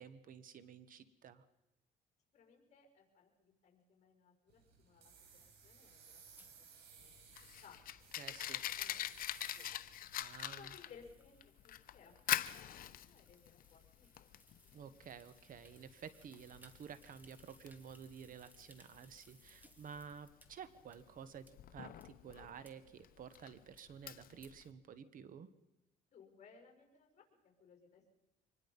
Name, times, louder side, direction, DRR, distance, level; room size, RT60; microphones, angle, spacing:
voice 1, 0.0-1.4 8.2-8.6 10.2-10.7 14.7-25.5, right 7 dB, 55° right, 14 dB, 1.4 m, -52 dB
voice 2, 2.3-6.5 6.8-7.1 7.4-7.9 8.2-8.4 8.7-9.1 9.6-9.9 10.5-14.3 14.8-14.9 26.1-28.0, left 6 dB, 40° left, 2 dB, 5.7 m, -62 dB
sound 1, 4.5-10.2, right 6 dB, 80° right, 6.2 m, -60 dB
sound 2, 6.4-20.5 20.9-21.0 21.5-21.6 22.0-22.1 22.6-22.7 23.3-23.4 23.8-23.9 24.4-24.5, right 1 dB, 10° right, 2.3 m, -68 dB
Fire, 7.0-24.7, left 12 dB, 55° left, 0.9 m, -44 dB
25.0 x 20.0 x 5.6 m, 0.94 s
cardioid pair, 110°, 17 cm